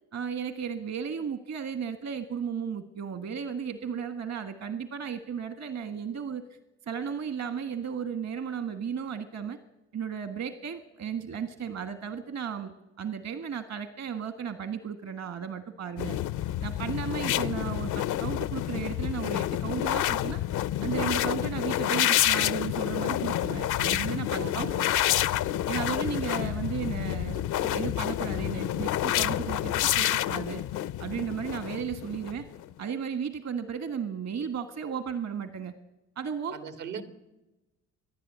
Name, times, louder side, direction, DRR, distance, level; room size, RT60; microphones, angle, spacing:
voice 1, 0.1-6.4 6.9-9.6 9.9-12.7 13.0-16.2 16.6-20.4 20.8-24.7 25.2-25.3 25.7-30.6 31.0-32.5 32.8-35.7 36.2-36.6, right 7 dB, 60° right, 10 dB, 1.6 m, -34 dB
sound 1, 16.0-32.6, left 13 dB, 85° left, 0.7 m, -28 dB
voice 2, 24.4-24.9 36.5-37.0, right 6 dB, 85° right, 9 dB, 2.3 m, -39 dB
26.5 x 11.0 x 9.4 m, 1.0 s
cardioid pair, 90°, 30 cm